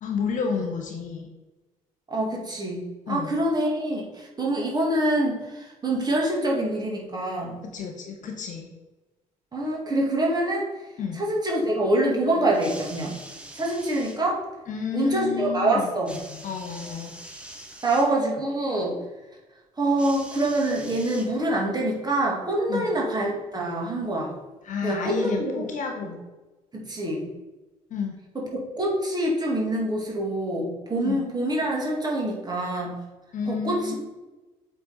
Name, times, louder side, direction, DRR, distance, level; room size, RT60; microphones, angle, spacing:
voice 1, 0.0-1.3 3.1-3.4 7.7-8.7 11.0-11.2 14.7-17.1 22.7-22.9 24.6-26.1 27.9-28.2 31.0-31.3 33.3-33.9, left 6 dB, 45° left, 3 dB, 1.0 m, -31 dB
voice 2, 2.1-7.6 9.5-10.7 11.1-13.2 13.5-14.4 14.9-16.1 17.8-19.0 19.8-24.3 24.8-25.7 26.0-26.1 26.7-27.3 28.3-33.0 33.5-34.0, right 1 dB, 20° right, -2 dB, 2.0 m, -25 dB
sound 1, 12.5-14.2 16.0-18.1 20.0-21.7 22.6-22.7, right 1 dB, 5° right, 1.2 m, -43 dB
7.7 x 3.4 x 4.2 m, 1.1 s
figure-of-eight pair, 50°, 19 cm